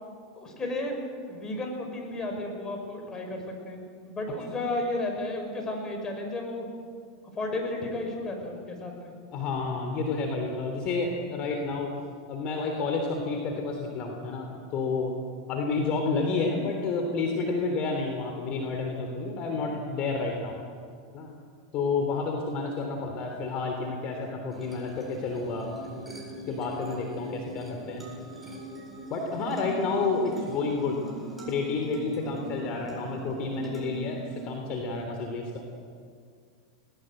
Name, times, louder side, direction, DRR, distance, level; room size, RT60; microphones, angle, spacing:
voice 1, 0.3-0.9 1.3-6.6 7.3-9.1, left 2 dB, 25° left, 2 dB, 6.6 m, -33 dB
voice 2, 9.3-11.9 12.3-15.1 15.5-20.6 21.1-21.3 21.7-26.1 26.5-28.0 29.1-31.0 31.5-35.6, left 4 dB, 45° left, 3 dB, 3.3 m, -30 dB
sound 1, 24.5-35.1, right 3 dB, 5° right, 7.8 m, -41 dB
20.5 x 20.0 x 7.9 m, 2.1 s
hypercardioid pair, 105°, 3 cm